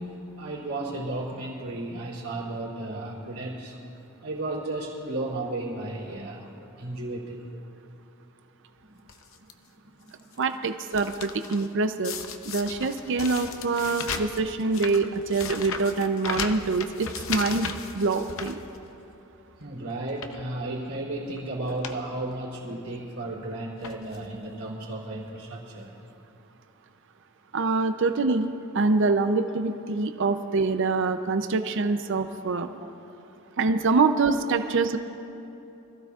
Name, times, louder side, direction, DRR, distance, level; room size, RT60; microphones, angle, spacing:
voice 1, 0.0-3.7 4.2-6.5 6.8-7.4 8.9-9.0 18.7-18.8 19.6-25.9 29.1-29.2 32.8-32.9 33.8-33.9, right 2 dB, 80° right, -4 dB, 3.3 m, -34 dB
sound 1, 9.1-9.5 10.1-10.4 10.7-11.7 12.0-19.1 19.5-19.7 20.1-20.5 21.3-21.4 21.6-22.0 22.3-22.4 23.3-23.5 23.8-24.3 25.1-25.2 25.4-25.5, left 6 dB, 65° left, 0.7 m, -36 dB
voice 2, 10.4-12.2 12.5-18.6 27.5-32.7 33.6-35.0, right 3 dB, 60° right, 8 dB, 0.5 m, -25 dB
24.5 x 15.0 x 2.4 m, 2.9 s
head